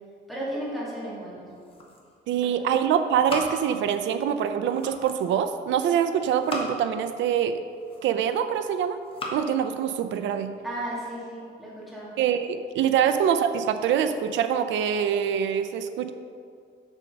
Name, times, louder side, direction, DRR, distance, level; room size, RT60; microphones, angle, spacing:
voice 1, 0.3-1.4 2.3-2.7 10.6-12.1, right 1 dB, ahead, -8 dB, 2.0 m, -34 dB
sound 1, 1.3-2.3 2.6-4.1 4.5-5.3 6.1-7.0 7.6-8.4 8.9-9.4, left 1 dB, 30° left, 1.2 m, -38 dB
voice 2, 2.3-7.6 8.0-9.0 9.3-10.5 12.2-16.1, right 8 dB, 80° right, 9 dB, 0.5 m, -24 dB
7.2 x 6.7 x 5.2 m, 2.2 s
cardioid pair, 155°, 19 cm